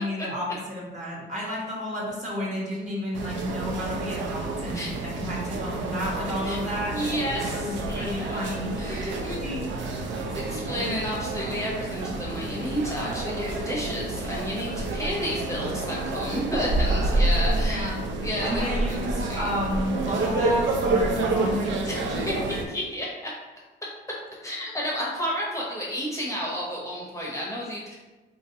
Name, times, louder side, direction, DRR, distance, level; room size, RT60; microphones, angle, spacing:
voice 1, 0.0-7.0 7.5-10.0 17.7-18.1 18.4-22.4, equal, 35° right, -4 dB, 1.1 m, -32 dB
sound 1, 3.1-22.6, right 2 dB, 70° right, 0.5 m, -29 dB
voice 2, 6.9-9.4 10.5-17.9 18.2-19.5 21.9-22.0 22.7-23.3 24.4-28.0, equal, 15° left, -5 dB, 0.7 m, -31 dB
2.8 x 2.6 x 2.7 m, 1.2 s
cardioid pair, 90°, 20 cm